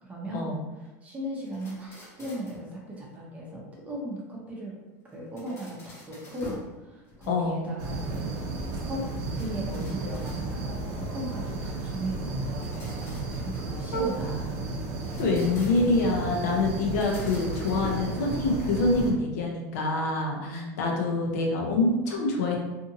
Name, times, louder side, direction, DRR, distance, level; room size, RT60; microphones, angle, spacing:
voice 1, 0.0-4.7 5.1-8.3 8.8-9.0 9.4-14.6 20.4-20.8, right 1 dB, 15° right, -4 dB, 0.7 m, -37 dB
sound 1, 1.5-2.7 5.1-6.7 7.1-7.7 9.2-10.8 12.4-14.4 14.9-16.1 16.8-18.7, left 2 dB, 30° left, 0.9 m, -46 dB
voice 2, 7.3-7.6 13.9-14.0 15.2-22.6, left 2 dB, 80° left, 0 dB, 0.7 m, -26 dB
sound 2, 7.8-19.1, right 3 dB, 50° right, 0.6 m, -33 dB
2.7 x 2.6 x 2.6 m, 1.1 s
supercardioid pair, 140°, 8 cm